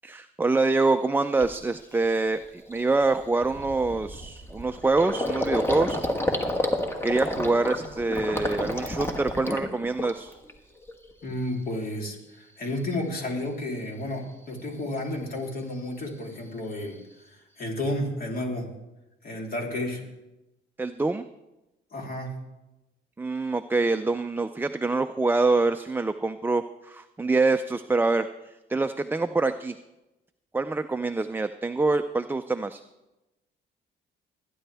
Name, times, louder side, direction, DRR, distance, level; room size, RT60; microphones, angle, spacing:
voice 1, 0.0-6.4 7.0-10.3 20.8-21.3 23.2-29.8 30.5-32.8, right 3 dB, 10° right, 8 dB, 0.4 m, -25 dB
Gurgling, 0.8-0.9 1.4-1.7 2.0-2.2 2.5-10.5 10.8-11.5, left 1 dB, 10° left, 1.5 m, -30 dB
voice 2, 11.2-17.0 17.3-18.7 19.2-20.0 21.9-22.3, left 1 dB, 50° left, 0 dB, 3.2 m, -32 dB
20.5 x 10.0 x 3.4 m, 0.99 s
cardioid pair, 90°, 20 cm